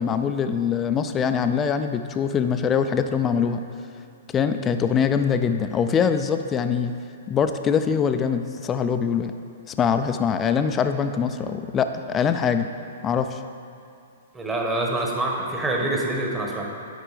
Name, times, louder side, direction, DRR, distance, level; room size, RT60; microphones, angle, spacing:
voice 1, 0.0-3.6 4.3-6.9 7.3-9.3 9.7-12.7 13.0-13.4, left 7 dB, 20° left, 8 dB, 0.4 m, -23 dB
voice 2, 14.3-16.7, right 2 dB, 15° right, -1 dB, 1.3 m, -26 dB
10.0 x 4.5 x 4.9 m, 2.5 s
hypercardioid pair, 130°, 0 cm